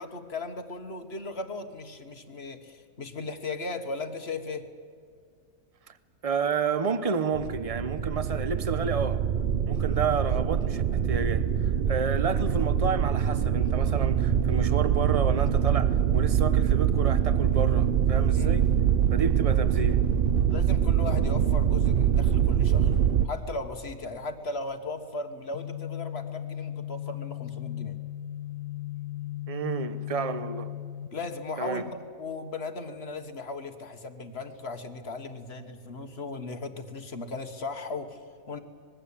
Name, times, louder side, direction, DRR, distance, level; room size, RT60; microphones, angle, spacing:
voice 1, 0.0-4.6 18.3-18.6 20.5-23.0 23.2-28.0 31.1-38.6, left 3 dB, 40° left, 1.6 m, -37 dB
voice 2, 6.2-9.2 9.7-18.7 19.1-20.0 29.5-30.7 31.6-31.8, right 5 dB, 25° right, 0.8 m, -30 dB
sound 1, 7.3-23.3, right 8 dB, 55° right, 0.6 m, -24 dB
sound 2, 25.5-31.1, left 12 dB, 65° left, 1.4 m, -36 dB
25.5 x 21.0 x 8.6 m
omnidirectional pair, 1.8 m